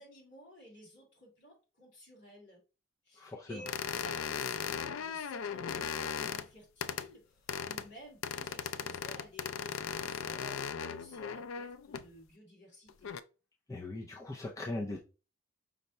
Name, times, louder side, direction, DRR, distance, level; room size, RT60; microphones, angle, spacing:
voice 1, 0.0-2.6 3.0-13.1, equal, 55° left, 2.4 m, -54 dB
voice 2, 3.2-3.6 13.7-15.0, left 2 dB, 15° left, 0.4 m, -39 dB
sound 1, 3.7-6.5 6.8-7.1 7.5-7.9 8.2-12.1 12.9-13.2, left 7 dB, 80° left, 0.3 m, -37 dB
5.3 x 2.2 x 4.0 m
head